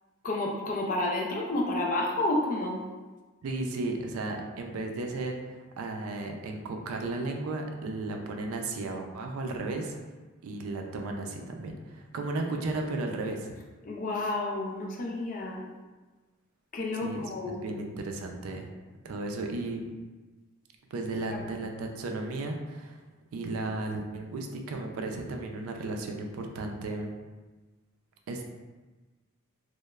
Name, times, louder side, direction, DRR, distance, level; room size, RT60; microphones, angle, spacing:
voice 1, 0.2-2.8 13.8-15.6 16.7-17.6 21.4-21.5, left 2 dB, 40° left, -1 dB, 0.4 m, -30 dB
voice 2, 3.4-10.0 10.4-13.5 16.9-18.7 19.0-19.8 20.9-23.0 23.3-27.1 28.3-28.4, right 2 dB, 85° right, 3 dB, 0.3 m, -34 dB
3.0 x 2.0 x 2.3 m, 1.3 s
head